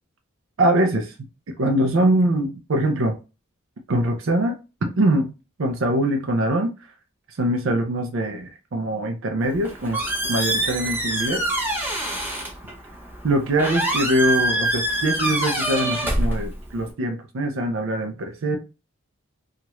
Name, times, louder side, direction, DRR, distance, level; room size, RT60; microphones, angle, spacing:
voice 1, 0.6-1.1 1.6-3.2 3.9-5.3 5.6-6.7 7.3-10.0 10.3-11.4 13.2-18.6, right 1 dB, 65° right, 0.5 m, -23 dB
Squeak, 9.4-16.9, right 1 dB, 10° right, 0.6 m, -25 dB
3.0 x 2.4 x 2.9 m
head